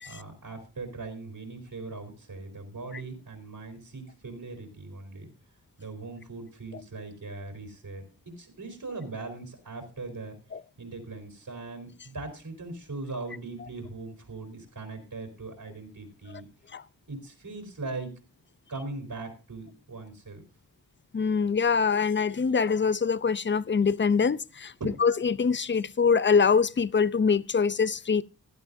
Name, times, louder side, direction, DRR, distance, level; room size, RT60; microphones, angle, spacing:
voice 1, 0.1-5.3 5.8-10.4 10.8-16.5 17.1-18.1 18.7-20.4 24.8-24.9, right 3 dB, 60° right, 3.8 m, -40 dB
voice 2, 21.1-24.7 25.0-28.2, left 5 dB, 30° left, 0.5 m, -24 dB
16.0 x 11.5 x 2.7 m
cardioid pair, 50°, 39 cm